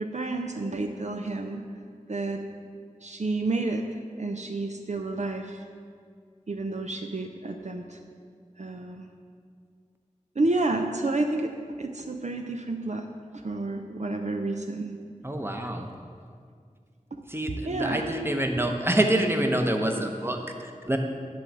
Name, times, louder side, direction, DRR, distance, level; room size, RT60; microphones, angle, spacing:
voice 1, 0.0-1.7 2.1-2.5 3.0-3.9 4.2-5.6 6.5-8.0 8.6-9.1 10.4-11.5 11.8-13.1 13.4-15.0 17.1-17.2 17.6-18.2 18.5-18.6, right 2 dB, 60° right, 4 dB, 0.5 m, -30 dB
voice 2, 15.2-15.9 17.3-21.0, right 1 dB, 15° right, 4 dB, 0.9 m, -26 dB
10.5 x 3.9 x 7.6 m, 2.1 s
wide cardioid pair, 40°, 13 cm